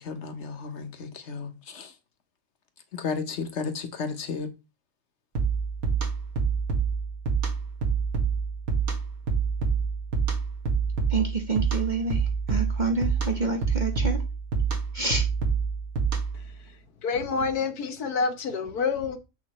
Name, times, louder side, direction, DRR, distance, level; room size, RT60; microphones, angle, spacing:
voice 1, 0.0-1.9 2.9-4.5, left 5 dB, 50° left, 1.2 m, -33 dB
sound 1, 5.3-16.5, right 5 dB, 65° right, 2.5 m, -27 dB
voice 2, 11.1-14.2 14.9-15.3, right 3 dB, 35° right, 0.8 m, -28 dB
voice 3, 17.0-19.2, left 5 dB, 85° left, 1.6 m, -27 dB
6.7 x 6.4 x 3.1 m
omnidirectional pair, 1.6 m